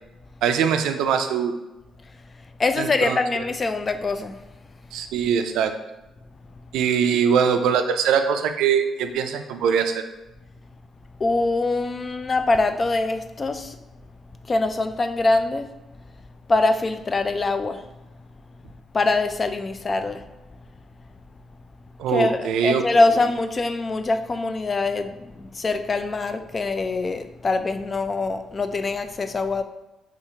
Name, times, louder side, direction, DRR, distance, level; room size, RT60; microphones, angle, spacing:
voice 1, 0.4-1.6 2.8-3.2 4.9-5.7 6.7-10.0 22.0-22.8, right 7 dB, 85° right, 7 dB, 0.3 m, -22 dB
voice 2, 2.6-4.4 11.2-13.8 14.4-15.7 16.5-17.8 18.9-20.2 22.1-29.6, left 3 dB, 35° left, 9 dB, 0.3 m, -23 dB
4.2 x 2.4 x 2.8 m, 1.1 s
cardioid pair, 90°, 0 cm